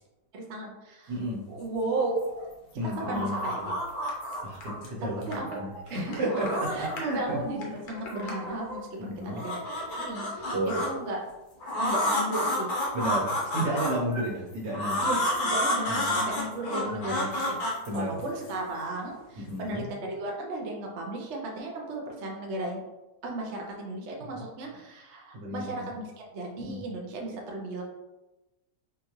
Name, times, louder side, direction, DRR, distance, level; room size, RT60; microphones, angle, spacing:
voice 1, 0.3-1.2 1.5-2.2 2.8-3.7 5.0-5.6 5.9-6.2 6.5-6.9 7.1-11.2 11.8-12.7 15.0-17.7 17.9-22.8 23.2-27.8, right 2 dB, 55° right, -1 dB, 0.8 m, -35 dB
voice 2, 1.1-1.5 2.7-3.4 4.4-5.2 5.6-7.4 9.0-9.4 10.5-10.8 12.9-15.0 15.9-16.1 16.9-17.1 17.9-18.2 19.4-19.9 24.3-24.4 25.3-25.9 26.6-26.9, right 1 dB, 85° right, -4 dB, 1.7 m, -32 dB
sound 1, 2.0-2.5 2.8-4.9 5.2-7.2 7.4-8.8 9.2-10.9 11.6-14.2 14.7-18.5, left 1 dB, 65° left, 1.3 m, -30 dB
4.4 x 2.5 x 3.0 m, 1.0 s
omnidirectional pair, 1.8 m